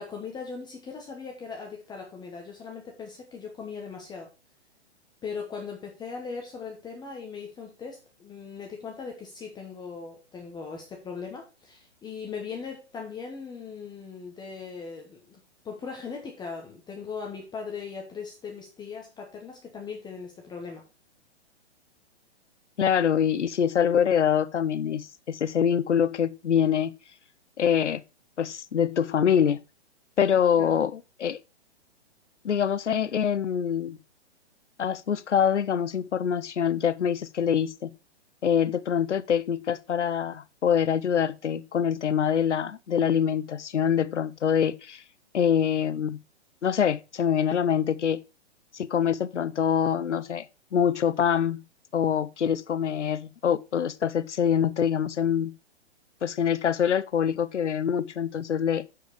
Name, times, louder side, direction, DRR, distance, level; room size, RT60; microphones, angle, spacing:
voice 1, 0.0-4.3 5.2-15.4 15.6-20.8 30.6-30.8, left 5 dB, 10° left, 1.1 m, -39 dB
voice 2, 22.8-26.9 27.6-28.0 28.4-29.6 30.2-31.4 32.4-34.0 34.8-37.9 38.4-45.0 45.3-46.2 46.6-48.2 48.7-50.5 50.7-51.6 51.9-55.6 56.2-58.9, left 8 dB, 90° left, 0.7 m, -25 dB
9.5 x 4.8 x 4.8 m
hypercardioid pair, 130°, 34 cm